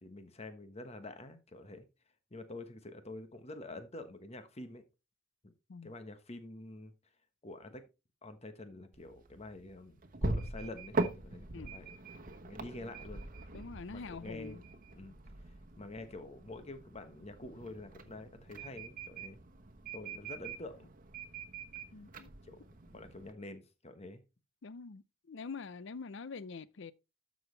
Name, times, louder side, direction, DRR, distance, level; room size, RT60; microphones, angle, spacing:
voice 1, 0.0-1.9 2.3-4.8 5.4-5.5 5.8-6.9 7.4-7.8 8.2-12.0 12.4-13.2 13.9-14.6 14.9-15.1 15.8-19.4 19.9-20.9 22.4-24.2, left 2 dB, 35° left, 1.2 m, -47 dB
sound 1, 8.9-23.3, right 2 dB, 45° right, 1.1 m, -42 dB
voice 2, 11.5-11.9 13.5-14.6 21.9-22.3 24.6-26.9, left 4 dB, 65° left, 0.6 m, -45 dB
12.5 x 6.3 x 3.3 m
head